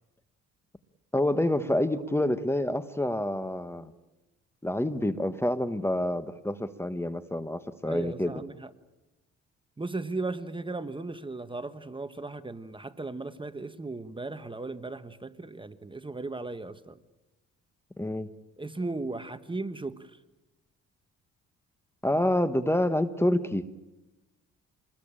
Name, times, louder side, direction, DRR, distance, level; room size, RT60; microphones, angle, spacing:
voice 1, 1.1-3.9 4.6-8.3 18.0-18.3 22.0-23.6, left 1 dB, 10° left, 12 dB, 1.3 m, -27 dB
voice 2, 7.9-8.7 9.8-17.0 18.6-20.2, right 3 dB, 15° right, 11 dB, 1.3 m, -36 dB
27.0 x 21.0 x 8.9 m, 1.0 s
cardioid pair, 90°, 30 cm